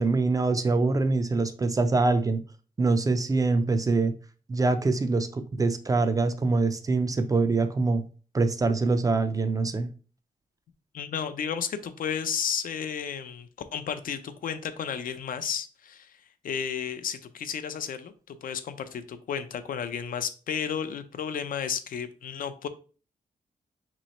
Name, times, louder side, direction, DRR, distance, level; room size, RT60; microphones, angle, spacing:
voice 1, 0.0-2.4 2.8-4.1 4.5-8.0 8.3-9.9, right 3 dB, 25° right, 10 dB, 0.3 m, -24 dB
voice 2, 10.9-16.1 16.4-22.7, left 7 dB, 70° left, 11 dB, 0.4 m, -33 dB
3.0 x 3.0 x 4.1 m, 0.38 s
wide cardioid pair, 145°, 15 cm